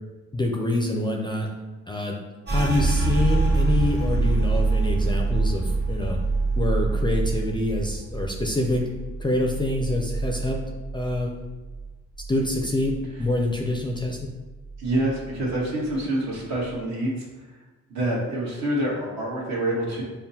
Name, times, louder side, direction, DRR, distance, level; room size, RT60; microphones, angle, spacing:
voice 1, 0.3-1.5 1.9-2.2 2.5-6.2 6.6-8.8 9.2-11.3 12.3-14.2, left 2 dB, 15° left, 1 dB, 0.4 m, -26 dB
sound 1, 2.5-11.9 12.2-13.4 13.7-14.2 14.6-15.2, right 3 dB, 35° right, 1.4 m, -25 dB
voice 2, 14.8-17.3 17.9-20.0, right 1 dB, 65° right, -4 dB, 1.3 m, -26 dB
5.5 x 2.2 x 2.7 m, 1.2 s
cardioid pair, 90°, 30 cm